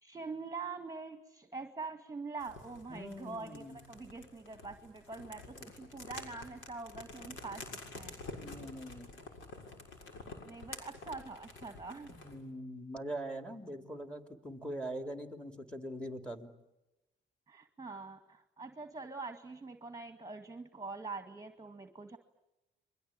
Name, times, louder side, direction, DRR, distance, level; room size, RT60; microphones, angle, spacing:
voice 1, 0.0-7.6 7.9-8.2 10.4-12.2 17.5-22.2, right 4 dB, 15° right, 8 dB, 2.1 m, -44 dB
sound 1, 2.4-12.4, left 3 dB, 75° left, 6.6 m, -49 dB
voice 2, 2.9-3.8 8.4-9.1 12.1-16.5, right 1 dB, 5° left, 7 dB, 3.6 m, -42 dB
29.5 x 22.5 x 8.9 m, 0.97 s
cardioid pair, 90°, 20 cm